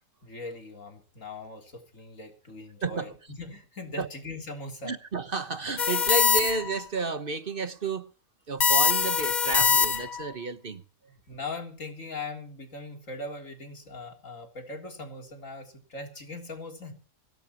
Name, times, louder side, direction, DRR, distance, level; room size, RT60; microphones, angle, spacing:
voice 1, 0.2-4.9 11.3-16.9, left 3 dB, 75° left, 3.9 m, -40 dB
voice 2, 2.8-3.1 4.0-4.1 4.8-8.1 8.5-10.8, right 3 dB, 45° right, 1.2 m, -31 dB
sound 1, 5.8-6.8 8.6-10.3, left 6 dB, 40° left, 0.9 m, -23 dB
23.0 x 17.5 x 3.0 m
omnidirectional pair, 1.3 m